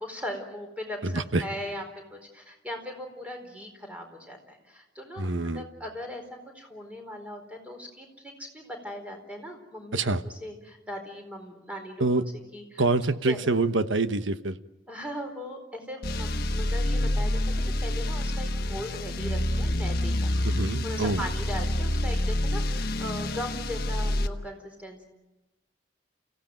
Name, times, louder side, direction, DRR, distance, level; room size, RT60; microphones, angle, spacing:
voice 1, 0.0-12.1 12.5-12.8 13.2-13.4 14.9-17.4 17.8-20.4 20.8-25.0, left 1 dB, 5° right, 4 dB, 4.2 m, -39 dB
voice 2, 1.0-1.4 5.2-5.6 9.9-10.2 12.0-12.2 12.8-14.6 20.4-21.2, right 3 dB, 80° right, 11 dB, 1.1 m, -26 dB
sound 1, 16.0-24.3, left 1 dB, 50° left, 1.3 m, -27 dB
29.0 x 16.5 x 9.1 m, 1.1 s
head